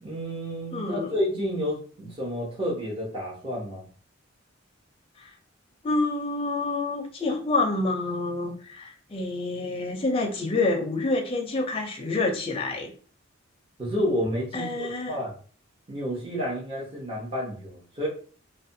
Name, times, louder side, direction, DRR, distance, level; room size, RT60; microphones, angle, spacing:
voice 1, 0.0-3.9 13.8-15.3 15.9-18.1, equal, 30° right, -5 dB, 0.8 m, -30 dB
voice 2, 0.7-1.1 5.2-5.3 5.8-12.9 14.5-15.2, left 2 dB, 30° left, 2 dB, 0.5 m, -27 dB
2.5 x 2.1 x 2.6 m, 0.42 s
head